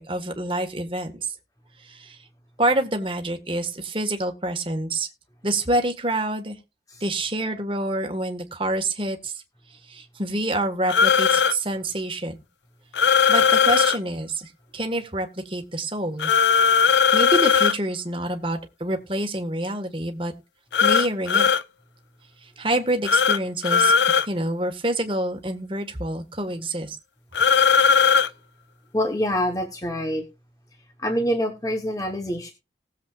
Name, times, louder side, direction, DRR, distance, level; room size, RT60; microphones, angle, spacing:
voice 1, 0.0-1.3 1.8-2.2 2.6-5.1 5.4-6.6 7.0-9.4 9.9-12.3 13.3-16.3 17.1-20.3 20.8-21.5 22.4-23.9 24.3-27.0, right 1 dB, 30° right, 5 dB, 1.5 m, -27 dB
sound 1, 10.9-11.5 12.9-14.0 16.2-17.7 20.7-21.6 23.1-23.4 23.6-24.3 27.3-28.3, left 6 dB, 80° left, 0.5 m, -18 dB
voice 2, 28.9-30.2 31.0-32.5, equal, 20° left, 4 dB, 1.0 m, -25 dB
19.0 x 7.4 x 2.4 m, 0.29 s
head